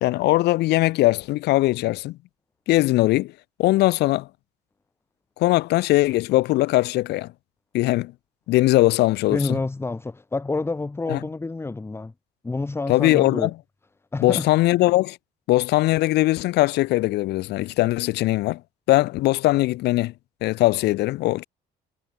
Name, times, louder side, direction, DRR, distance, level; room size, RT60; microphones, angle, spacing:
voice 1, 0.0-2.2 2.7-3.3 3.6-4.3 5.4-7.3 7.7-8.1 8.5-9.6 11.1-11.2 12.9-13.5 14.2-15.2 15.5-18.6 18.9-20.1 20.4-21.4, left 18 dB, 80° left, 0.9 m, -20 dB
voice 2, 9.3-12.1 12.4-13.5 14.1-14.5, left 3 dB, 15° left, 1.2 m, -28 dB
cardioid pair, 110°, 17 cm